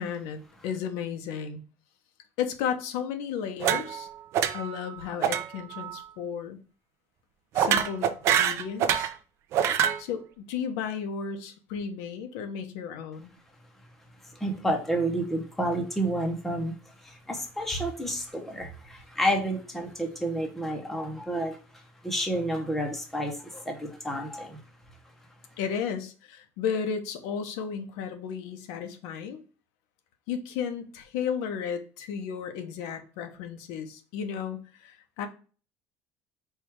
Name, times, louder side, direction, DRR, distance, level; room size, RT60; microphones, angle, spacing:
voice 1, 0.0-1.6 2.4-4.1 4.5-6.6 7.5-9.1 10.0-13.3 25.6-29.4 30.3-35.3, left 7 dB, 90° left, 7 dB, 0.7 m, -34 dB
sound 1, 3.6-4.1 4.3-4.8 5.2-5.4 5.7-6.0 7.6-9.1 9.5-10.0, right 9 dB, 50° right, 0.4 m, -25 dB
voice 2, 14.2-25.6, right 1 dB, 5° left, 2 dB, 0.7 m, -31 dB
4.5 x 2.3 x 4.5 m, 0.36 s
cardioid pair, 160°, 6 cm